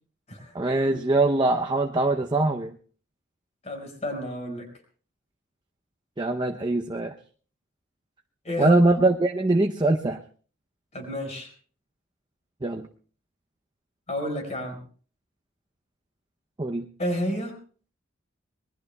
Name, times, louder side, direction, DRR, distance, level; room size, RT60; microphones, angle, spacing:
voice 1, 0.5-2.7 6.2-7.1 8.6-10.2 12.6-12.9 16.6-16.9, right 2 dB, 20° right, 3 dB, 0.6 m, -22 dB
voice 2, 3.6-4.7 8.4-8.8 10.9-11.5 14.1-14.8 17.0-17.6, equal, 35° left, 2 dB, 4.9 m, -30 dB
26.0 x 20.5 x 2.3 m, 0.43 s
head